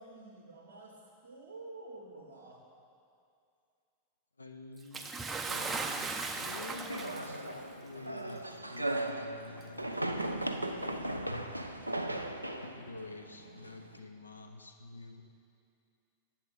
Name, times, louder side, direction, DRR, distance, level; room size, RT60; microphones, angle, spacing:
voice 1, 0.0-2.6, right 2 dB, 65° right, -2 dB, 0.7 m, -49 dB
voice 2, 4.4-5.1 5.5-11.6 12.6-15.2, left 3 dB, 80° left, 5 dB, 0.5 m, -49 dB
Bathtub (filling or washing) / Splash splatter, 4.9-7.5 8.5-8.6 9.6-9.7, right 4 dB, 15° right, 0.5 m, -37 dB
sound 1, 6.9-14.0, right 1 dB, 85° right, 0.3 m, -37 dB
8.3 x 7.0 x 3.7 m, 2.5 s
figure-of-eight pair, 90°, 0 cm